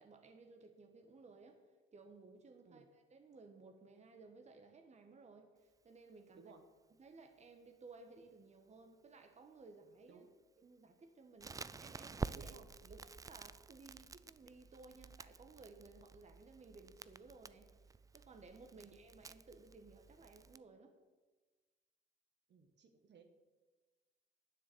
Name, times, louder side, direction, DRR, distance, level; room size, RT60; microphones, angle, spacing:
voice 1, 0.0-1.6 1.9-6.5 7.0-10.2 10.6-12.5 12.9-13.0 13.3-17.7 18.1-20.9, right 3 dB, 35° right, 5 dB, 1.4 m, -58 dB
voice 2, 6.3-6.7 10.1-10.3 12.3-13.0 18.7-18.9 22.5-23.2, right 5 dB, 60° right, 6 dB, 1.6 m, -60 dB
Crackle, 11.4-20.6, right 4 dB, 15° right, 0.3 m, -50 dB
9.7 x 7.5 x 7.8 m, 1.3 s
cardioid pair, 90°, 20 cm